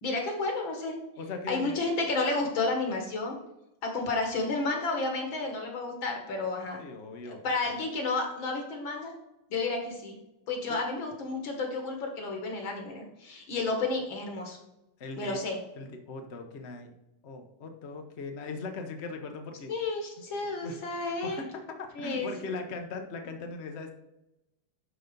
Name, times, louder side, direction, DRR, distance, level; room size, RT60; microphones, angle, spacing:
voice 1, 0.0-1.0 1.5-3.4 3.8-6.8 7.4-9.1 9.5-10.2 10.5-14.6 15.2-15.6 19.7-21.4 22.0-22.3, left 3 dB, 65° left, 2 dB, 2.4 m, -31 dB
voice 2, 1.2-1.8 6.8-7.4 15.0-15.4 15.8-16.9 17.2-19.7 20.2-21.5 21.8-23.9, left 3 dB, 50° left, 4 dB, 0.8 m, -39 dB
11.5 x 4.0 x 5.3 m, 0.91 s
omnidirectional pair, 2.3 m